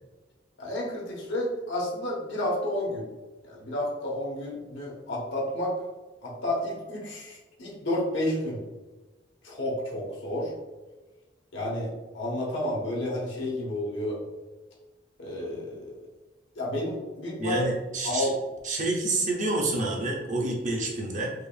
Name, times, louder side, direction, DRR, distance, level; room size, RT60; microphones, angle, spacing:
voice 1, 0.6-3.0 3.4-5.8 6.2-8.6 9.4-10.5 11.5-11.9 12.1-14.2 15.2-15.9 16.5-17.6 18.0-18.3, left 1 dB, 75° left, -3 dB, 1.2 m, -31 dB
voice 2, 17.4-18.3 18.6-21.3, right 2 dB, 40° right, -1 dB, 0.7 m, -28 dB
4.8 x 2.4 x 2.5 m, 1.2 s
head